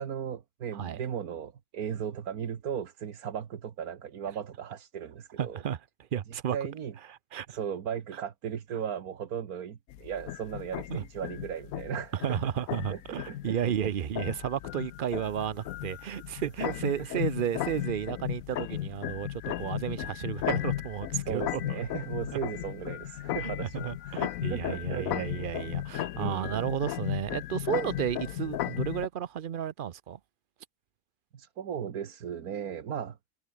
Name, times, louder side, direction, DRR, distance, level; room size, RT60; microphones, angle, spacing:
voice 1, 0.0-5.6 6.5-6.9 7.5-12.4 12.9-13.0 13.3-13.9 16.7-17.2 21.2-25.5 26.2-26.8 31.3-33.2, right 8 dB, 80° right, 1.8 m, -36 dB
voice 2, 5.4-5.8 6.1-6.6 7.3-7.6 10.9-11.0 12.2-21.8 23.4-30.2, right 9 dB, 55° right, 0.6 m, -33 dB
sound 1, 9.9-29.1, left 13 dB, 70° left, 1.0 m, -35 dB
omnidirectional pair, 1.6 m